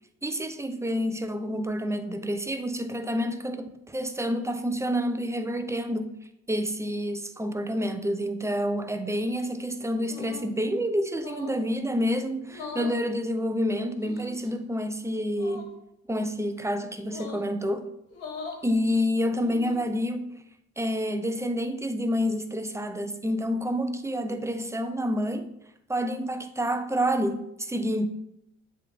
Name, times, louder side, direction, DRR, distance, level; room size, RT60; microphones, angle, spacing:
voice 1, 0.2-6.1 6.5-15.7 16.1-17.9 18.6-20.3 20.8-25.5 25.9-28.1, equal, 10° right, 0.7 m, -28 dB
sound 1, 10.0-10.5 11.1-11.6 12.5-13.0 14.0-14.5 15.3-15.7 17.0-17.5 18.1-18.6 19.3-19.9, left 4 dB, 70° left, 1.8 m, -40 dB
7.4 x 3.5 x 3.7 m
hypercardioid pair, 60°, 36 cm